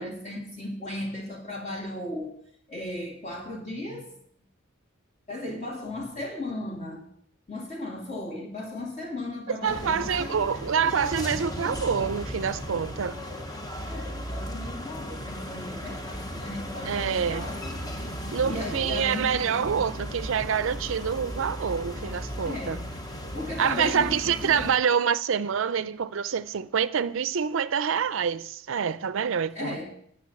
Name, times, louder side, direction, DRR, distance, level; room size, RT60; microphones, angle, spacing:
voice 1, 0.0-2.4 2.7-4.1 5.3-7.0 7.5-11.1 13.9-17.8 18.4-19.8 22.4-22.9 23.3-24.8 29.5-30.0, left 1 dB, 35° left, 2.7 m, -36 dB
voice 2, 9.6-13.2 16.8-17.5 18.3-22.8 23.6-29.8, right 7 dB, 65° right, 0.4 m, -26 dB
sound 1, 9.7-24.7, equal, 20° left, 0.9 m, -36 dB
9.5 x 6.4 x 8.3 m
head